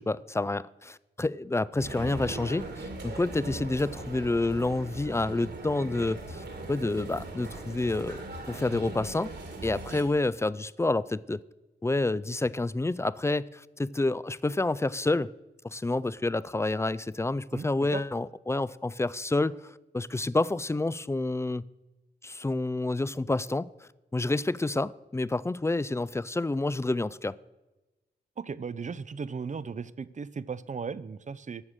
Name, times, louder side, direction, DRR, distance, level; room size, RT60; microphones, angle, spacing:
voice 1, 0.0-9.3 9.6-11.4 11.8-15.3 15.6-21.6 22.2-27.4, left 2 dB, 15° left, 0.3 m, -29 dB
sound 1, 1.8-10.0, right 2 dB, 70° right, 2.1 m, -40 dB
voice 2, 28.4-31.6, right 5 dB, 40° right, 0.5 m, -36 dB
11.0 x 7.3 x 6.4 m
cardioid pair, 60°, 18 cm